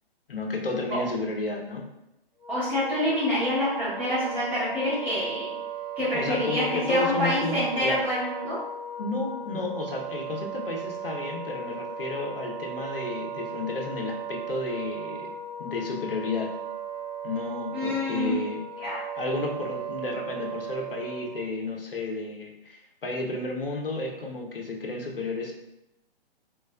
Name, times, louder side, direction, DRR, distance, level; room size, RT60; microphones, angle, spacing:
voice 1, 0.3-1.9 6.1-8.0 9.0-15.3 15.6-16.5 17.2-18.6 19.2-25.5, left 3 dB, 65° left, 1 dB, 0.8 m, -32 dB
Wind instrument woodwind instrument, 2.4-21.5, right 5 dB, 35° right, 1.3 m, -37 dB
voice 2, 2.5-5.5 6.0-8.6 17.7-18.4 18.8-19.0, left 1 dB, 5° right, -12 dB, 1.4 m, -27 dB
3.5 x 3.2 x 2.3 m, 0.88 s
figure-of-eight pair, 125°, 30 cm